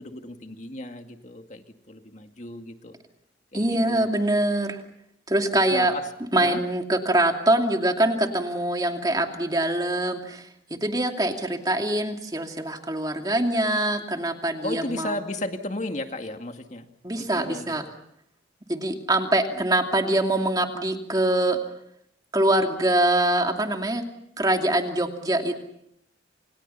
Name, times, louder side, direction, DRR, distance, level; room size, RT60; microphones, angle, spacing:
voice 1, 0.0-3.0 3.5-4.1 5.7-6.1 6.4-6.6 14.6-16.9 17.2-17.7, left 1 dB, 40° left, 5 dB, 2.2 m, -34 dB
voice 2, 3.5-4.8 5.3-5.9 6.3-15.1 17.0-17.8 18.7-21.6 22.3-24.0 24.4-25.6, right 1 dB, 20° right, 3 dB, 2.7 m, -24 dB
29.5 x 28.0 x 5.7 m, 0.74 s
head